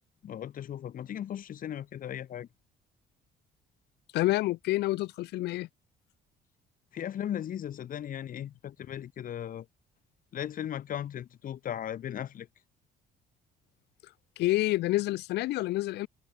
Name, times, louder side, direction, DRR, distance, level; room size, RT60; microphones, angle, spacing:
voice 1, 0.2-2.5 6.9-9.7 10.3-12.5, left 10 dB, 55° left, 4.8 m, -37 dB
voice 2, 4.1-5.7 14.4-16.1, left 17 dB, 80° left, 2.4 m, -28 dB
cardioid pair, 110°, 17 cm